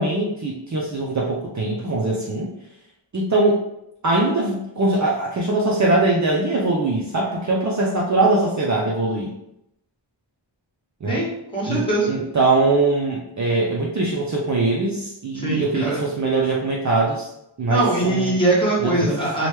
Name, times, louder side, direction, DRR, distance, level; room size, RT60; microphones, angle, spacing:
voice 1, 0.0-2.5 3.1-3.6 4.0-9.3 11.0-11.2 11.7-17.3 17.6-18.3 18.8-19.1, right 2 dB, 40° right, -3 dB, 0.5 m, -22 dB
voice 2, 11.1-12.1 15.3-16.0 17.7-19.5, right 2 dB, 10° left, -7 dB, 1.2 m, -22 dB
2.9 x 2.2 x 3.2 m, 0.82 s
wide cardioid pair, 90°, 46 cm